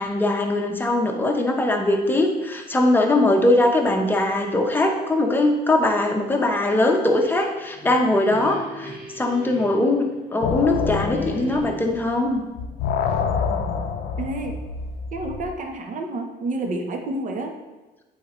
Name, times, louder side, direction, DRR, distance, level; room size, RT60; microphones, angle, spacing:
voice 1, 0.0-10.1 10.3-12.4, left 2 dB, 10° left, 2 dB, 0.8 m, -21 dB
sound 1, 7.5-10.6 11.1-12.0, right 1 dB, 70° right, 1.9 m, -40 dB
sound 2, 10.4-12.3 12.6-15.5, left 6 dB, 70° left, 0.5 m, -27 dB
voice 2, 14.2-14.6 15.1-17.5, right 2 dB, 50° right, 4 dB, 0.9 m, -29 dB
8.4 x 4.0 x 3.1 m, 1.1 s
cardioid pair, 110°, 17 cm